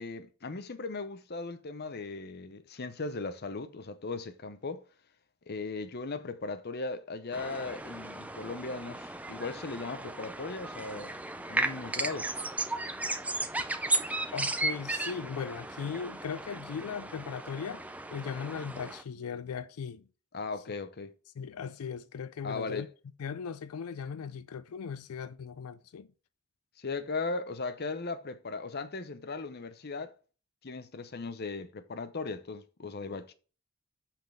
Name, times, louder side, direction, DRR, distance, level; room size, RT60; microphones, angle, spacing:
voice 1, 0.0-4.8 5.5-11.2 11.5-12.3 20.3-21.1 22.4-22.9 26.8-30.1 30.6-33.3, left 3 dB, 50° left, 0.8 m, -37 dB
sound 1, 7.3-19.0, right 2 dB, 5° right, 0.5 m, -35 dB
voice 2, 14.3-17.8 18.1-20.1 21.4-22.9 23.2-26.1, left 6 dB, 90° left, 0.4 m, -38 dB
5.8 x 5.2 x 5.7 m
head